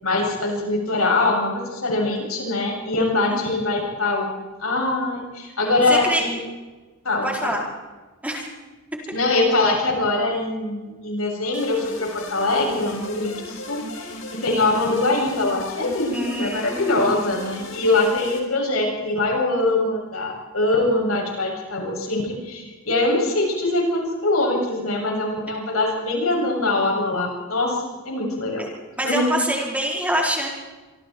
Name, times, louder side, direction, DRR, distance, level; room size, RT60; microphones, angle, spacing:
voice 1, 0.0-4.3 4.6-6.4 7.0-7.6 9.1-14.1 14.4-28.6 29.0-29.3, left 2 dB, 85° left, 0 dB, 8.0 m, -23 dB
voice 2, 3.3-3.6 5.9-6.2 7.2-7.6 8.2-8.4 16.1-17.4 29.0-30.5, right 1 dB, 5° right, -2 dB, 4.8 m, -26 dB
sound 1, 11.5-18.4, left 2 dB, 70° left, 5.3 m, -36 dB
27.0 x 25.5 x 4.7 m, 1.3 s
head